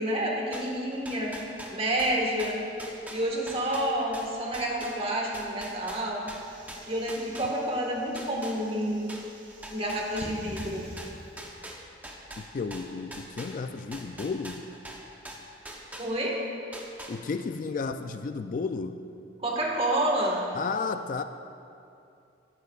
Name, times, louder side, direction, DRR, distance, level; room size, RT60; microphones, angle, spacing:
voice 1, 0.0-1.3 1.7-2.6 3.1-6.3 6.9-9.1 9.7-10.8 16.0-16.4 19.4-20.5, right 1 dB, 30° right, -1 dB, 1.5 m, -29 dB
sound 1, 0.5-7.8 8.2-16.4 16.7-17.5, right 1 dB, 10° right, 0.8 m, -43 dB
sound 2, 6.3-11.7, equal, 75° right, 1.9 m, -47 dB
voice 2, 12.4-14.7 17.1-19.0 20.5-21.2, left 4 dB, 45° left, 9 dB, 0.3 m, -33 dB
14.5 x 11.5 x 2.4 m, 2.6 s
head